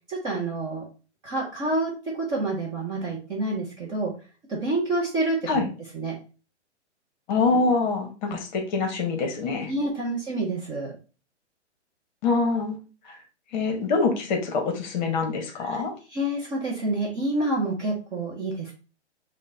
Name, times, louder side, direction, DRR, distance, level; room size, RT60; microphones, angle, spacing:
voice 1, 0.1-0.9 1.2-4.1 4.5-5.6 5.9-6.2 8.2-8.4 9.7-11.0 15.6-15.8 16.1-18.7, right 2 dB, 15° right, -4 dB, 0.4 m, -28 dB
voice 2, 7.3-9.7 12.2-12.8 13.0-13.2 13.5-15.9, left 4 dB, 40° left, 4 dB, 0.9 m, -25 dB
4.9 x 2.1 x 2.5 m, 0.34 s
hypercardioid pair, 125°, 35 cm